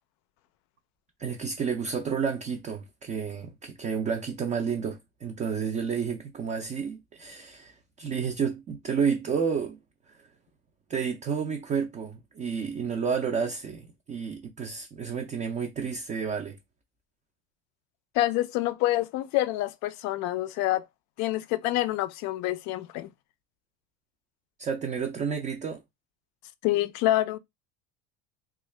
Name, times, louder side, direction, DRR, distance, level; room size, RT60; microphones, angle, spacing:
voice 1, 1.2-9.8 10.1-10.2 10.9-16.6 24.6-25.8, right 6 dB, 25° right, 0.4 m, -31 dB
voice 2, 18.1-20.9 21.2-23.1 26.6-27.4, left 15 dB, 60° left, 0.4 m, -27 dB
3.6 x 2.3 x 3.1 m
cardioid pair, 155°, 32 cm